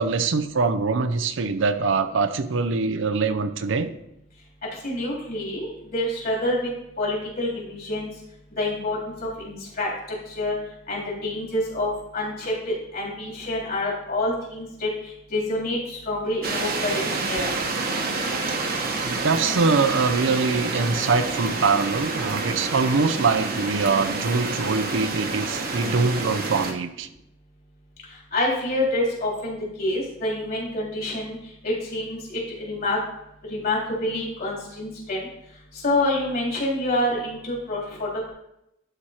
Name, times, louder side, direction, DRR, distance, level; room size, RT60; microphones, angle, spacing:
voice 1, 0.0-3.9 19.0-27.1, right 4 dB, 65° right, 9 dB, 0.6 m, -23 dB
voice 2, 4.8-6.7 7.0-8.1 8.6-9.9 10.3-10.6 10.9-14.9 15.3-17.5 28.3-31.4 31.6-33.0 33.5-35.2 35.8-38.3, left 1 dB, 50° left, -4 dB, 3.4 m, -27 dB
sound 1, 16.4-26.7, right 3 dB, 50° right, 1.1 m, -28 dB
11.5 x 4.6 x 4.3 m, 0.82 s
head